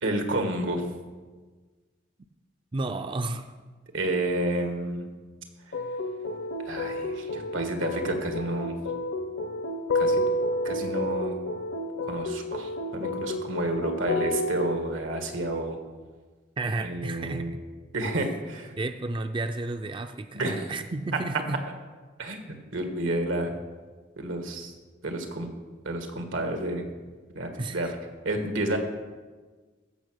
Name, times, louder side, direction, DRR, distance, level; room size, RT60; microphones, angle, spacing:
voice 1, 0.0-0.9 3.9-5.1 6.6-8.7 9.9-10.2 10.6-11.4 12.0-15.8 16.8-17.5 17.9-18.8 20.3-20.7 22.2-22.4 22.7-23.5 24.2-24.7 25.0-25.5 25.8-26.8 27.3-27.9 28.2-28.8, right 1 dB, 90° right, 4 dB, 1.7 m, -30 dB
voice 2, 2.7-3.5 16.6-17.5 18.8-21.6 27.6-27.9, right 2 dB, 25° right, 8 dB, 0.4 m, -32 dB
sound 1, 5.7-14.8, left 1 dB, 70° left, 0.9 m, -30 dB
15.0 x 5.9 x 6.4 m, 1.4 s
head